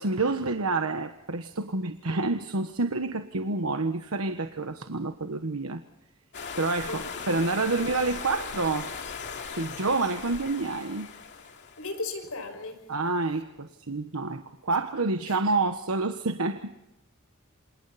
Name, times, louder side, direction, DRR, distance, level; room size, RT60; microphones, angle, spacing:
voice 1, 0.0-5.8 6.6-8.9 9.5-11.1 12.9-16.7, right 3 dB, 90° right, 1.3 m, -28 dB
sound 1, 6.3-12.1, left 5 dB, 55° left, 2.6 m, -38 dB
voice 2, 11.8-12.8 15.3-15.4, left 3 dB, 80° left, 5.9 m, -36 dB
28.0 x 28.0 x 4.2 m
head